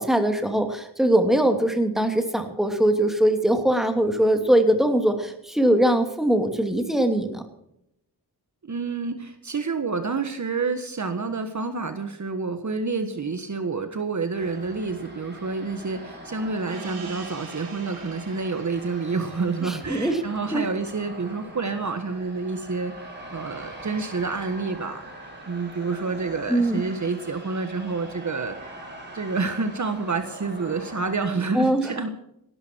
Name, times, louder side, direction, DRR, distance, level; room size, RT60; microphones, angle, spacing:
voice 1, 0.0-7.4 19.6-20.2 20.5-20.7 26.5-26.8 31.5-31.9, right 1 dB, ahead, 5 dB, 2.8 m, -21 dB
voice 2, 8.6-25.1 25.5-32.2, right 4 dB, 45° right, 8 dB, 1.5 m, -29 dB
sound 1, 14.3-31.2, right 1 dB, 25° right, 6.2 m, -42 dB
Gong, 16.7-21.7, right 4 dB, 60° right, 3.6 m, -44 dB
17.5 x 12.5 x 4.6 m, 0.78 s
cardioid pair, 75°, 41 cm